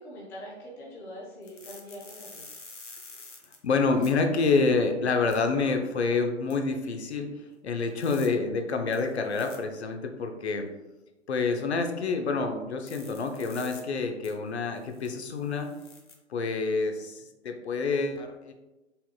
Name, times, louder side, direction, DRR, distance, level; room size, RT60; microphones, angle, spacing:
voice 1, 0.0-2.5, equal, 5° left, -4 dB, 0.5 m, -43 dB
sound 1, 1.4-4.1 5.3-5.4 6.5-6.6 7.8-8.3 8.9-9.6 12.9-13.8 14.2-14.3 14.7-16.1, left 3 dB, 80° left, 1.2 m, -48 dB
voice 2, 3.6-7.3 7.6-10.7 11.3-15.7 16.3-18.5, left 4 dB, 60° left, 5 dB, 0.8 m, -27 dB
5.6 x 4.0 x 2.3 m, 1.1 s
figure-of-eight pair, 120°, 36 cm